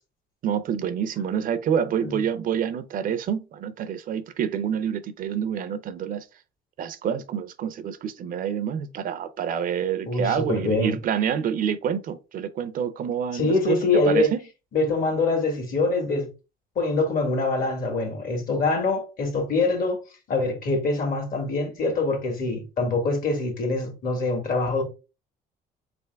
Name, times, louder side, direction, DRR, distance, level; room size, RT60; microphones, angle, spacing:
voice 1, 0.4-6.2 6.8-14.4, right 8 dB, 55° right, 0.6 m, -27 dB
voice 2, 10.1-10.9 13.3-14.3 14.7-16.3 16.8-20.0 20.3-24.8, left 3 dB, 55° left, 1.8 m, -24 dB
3.8 x 3.4 x 3.3 m
cardioid pair, 110°, 17 cm